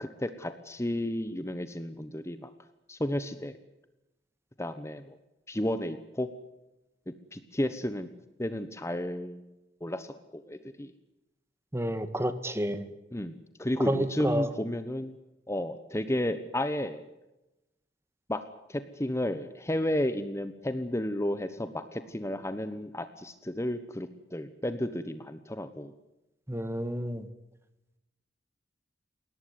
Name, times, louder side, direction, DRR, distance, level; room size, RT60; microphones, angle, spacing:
voice 1, 0.0-2.5 2.9-3.6 4.6-5.2 5.5-6.3 7.3-8.1 8.4-9.5 9.8-10.9 13.1-15.2 15.5-17.0 18.3-18.4 18.7-25.9, left 1 dB, 15° left, 11 dB, 1.2 m, -32 dB
voice 2, 11.7-12.9 13.9-14.5 26.5-27.3, equal, 15° right, 11 dB, 1.8 m, -30 dB
21.0 x 18.0 x 9.5 m, 0.94 s
head